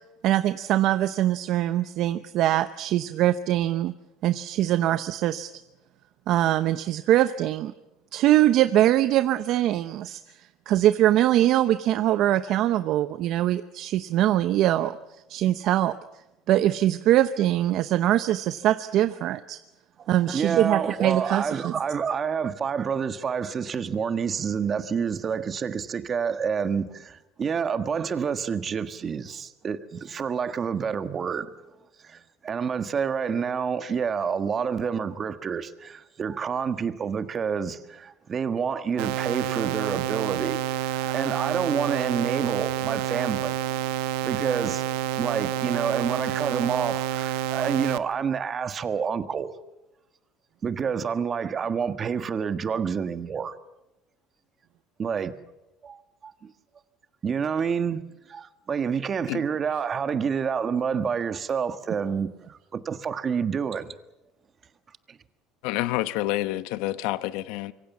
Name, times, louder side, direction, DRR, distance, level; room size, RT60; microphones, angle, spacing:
voice 1, 0.2-3.9 4.2-5.5 6.3-7.7 8.1-10.4 10.7-15.0 15.3-15.9 16.5-19.6 20.1-21.7 41.0-41.2, right 13 dB, 60° right, 0.8 m, -22 dB
voice 2, 20.0-31.5 32.0-43.8 44.2-44.8 45.2-49.5 50.6-53.5 55.0-55.3 55.8-56.5 57.2-58.0 58.3-63.9 65.1-65.2, right 6 dB, 30° right, 1.5 m, -28 dB
sound 1, 39.0-48.0, right 12 dB, 85° right, 1.1 m, -28 dB
voice 3, 65.6-67.7, left 17 dB, 80° left, 1.0 m, -28 dB
25.5 x 23.0 x 7.3 m
cardioid pair, 125°, 0 cm